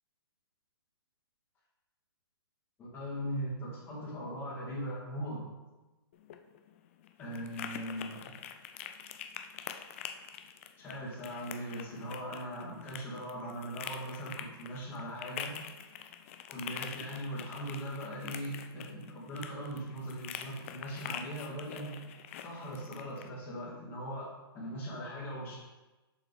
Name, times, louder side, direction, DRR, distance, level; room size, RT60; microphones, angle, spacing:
voice 1, 2.8-5.5 7.2-8.4 10.8-15.6 16.5-21.9 22.4-25.6, equal, 15° left, -6 dB, 2.0 m, -40 dB
sound 1, 6.1-23.3, left 9 dB, 30° left, 0.4 m, -45 dB
7.1 x 6.7 x 3.6 m, 1.1 s
hypercardioid pair, 165°, 13 cm